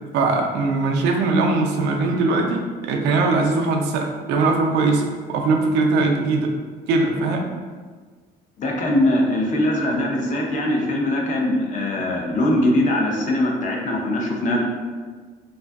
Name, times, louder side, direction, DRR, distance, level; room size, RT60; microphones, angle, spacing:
voice 1, 0.1-5.0 5.3-6.5 6.9-7.4, right 3 dB, 90° right, 2 dB, 0.4 m, -20 dB
voice 2, 8.6-14.7, left 1 dB, 45° left, -1 dB, 0.5 m, -21 dB
2.5 x 2.3 x 2.3 m, 1.5 s
cardioid pair, 110°, 17 cm